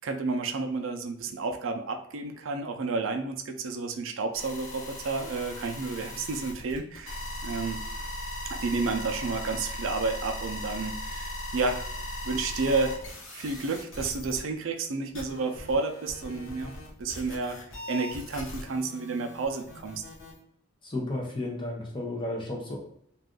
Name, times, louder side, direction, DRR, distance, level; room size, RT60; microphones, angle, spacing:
voice 1, 0.0-7.8 8.5-11.8 12.2-13.0 13.3-17.6 17.9-20.0, right 3 dB, 80° right, 5 dB, 0.4 m, -31 dB
sound 1, 4.3-14.4 14.8-14.9 15.1-20.3, left 1 dB, 90° left, 1.0 m, -39 dB
voice 2, 20.8-22.8, left 1 dB, 25° left, -1 dB, 0.6 m, -33 dB
2.4 x 2.4 x 3.5 m, 0.72 s
head